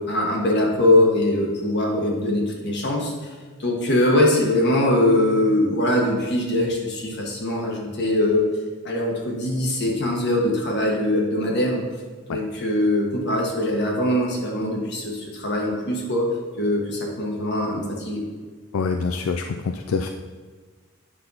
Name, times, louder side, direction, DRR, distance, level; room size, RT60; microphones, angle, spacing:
voice 1, 0.1-3.3 3.6-8.5 8.8-11.8 12.3-16.3 16.6-18.2, left 1 dB, 55° left, 0 dB, 1.5 m, -22 dB
voice 2, 18.7-20.1, left 4 dB, 85° left, 5 dB, 0.4 m, -25 dB
8.7 x 4.0 x 5.7 m, 1.4 s
head